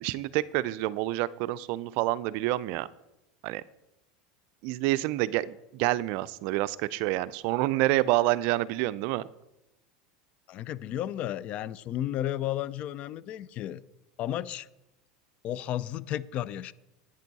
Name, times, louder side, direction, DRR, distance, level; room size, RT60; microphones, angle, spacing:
voice 1, 0.0-2.9 3.4-3.6 4.6-9.2, right 16 dB, 65° right, 18 dB, 0.4 m, -28 dB
voice 2, 10.5-13.8 14.2-14.7 15.4-16.7, left 12 dB, 50° left, 19 dB, 0.5 m, -33 dB
10.5 x 8.9 x 4.1 m, 0.92 s
supercardioid pair, 105°, 3 cm